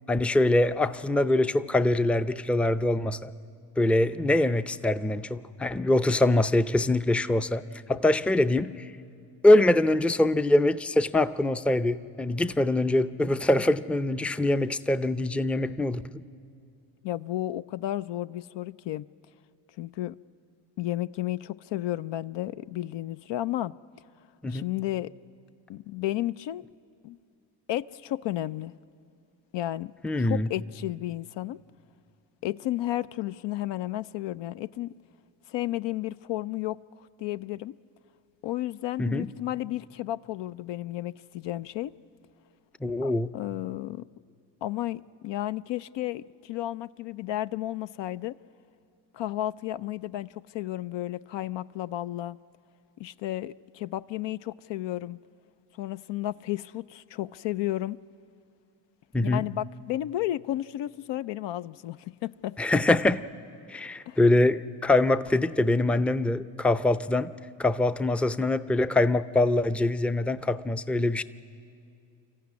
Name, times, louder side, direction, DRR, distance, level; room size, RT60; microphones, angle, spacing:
voice 1, 0.1-3.3 3.8-7.6 7.9-8.9 9.4-16.0 24.4-24.7 30.0-30.5 39.0-39.3 42.8-43.3 59.1-59.5 62.6-63.2 63.7-67.3 67.6-71.2, left 2 dB, 5° left, 0.5 m, -24 dB
voice 2, 17.0-19.0 19.8-20.1 20.8-23.7 24.5-25.1 25.7-26.6 27.0-27.2 27.7-28.7 29.5-29.9 30.2-31.6 32.4-34.9 35.5-36.8 37.2-37.7 38.4-41.9 43.0-44.0 44.6-48.4 49.1-52.4 53.0-55.2 55.8-58.0 59.2-62.6 64.1-64.2, left 14 dB, 65° left, 0.6 m, -32 dB
24.5 x 14.0 x 9.5 m
supercardioid pair, 60°, 48 cm